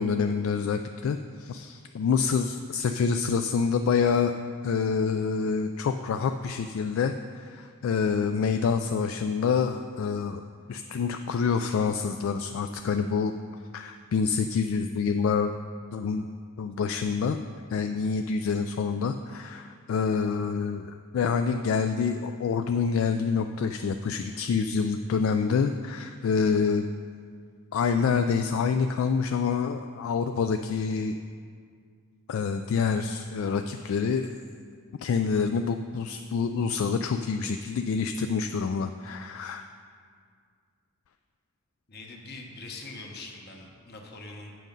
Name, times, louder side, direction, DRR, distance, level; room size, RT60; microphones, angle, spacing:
voice 1, 0.0-4.3 4.6-10.4 10.7-13.3 13.7-15.5 15.9-16.3 16.6-17.4 17.7-26.9 27.7-31.2 32.3-34.4 35.0-39.7, left 5 dB, 70° left, 7 dB, 0.3 m, -27 dB
voice 2, 41.9-44.5, left 3 dB, 50° left, 1 dB, 1.1 m, -43 dB
7.8 x 6.1 x 5.3 m, 2.1 s
head